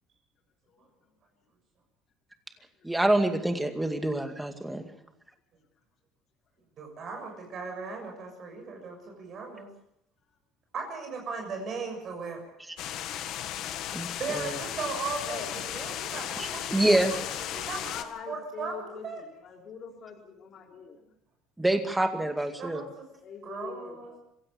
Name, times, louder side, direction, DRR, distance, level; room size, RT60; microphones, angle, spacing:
voice 1, 2.8-4.8 13.9-14.5 16.7-17.2 21.6-22.8, right 1 dB, 5° right, 6 dB, 2.3 m, -26 dB
voice 2, 6.8-9.7 10.7-12.4 14.1-17.9 18.3-19.2 22.2-23.1 23.4-24.2, right 4 dB, 40° right, 3 dB, 6.6 m, -37 dB
sound 1, 12.8-18.0, left 11 dB, 60° left, 1.8 m, -35 dB
voice 3, 15.2-15.6 17.9-20.2 20.5-21.0 23.2-24.2, left 6 dB, 45° left, 0 dB, 3.5 m, -44 dB
26.0 x 16.5 x 7.0 m, 0.77 s
cardioid pair, 140°, 0 cm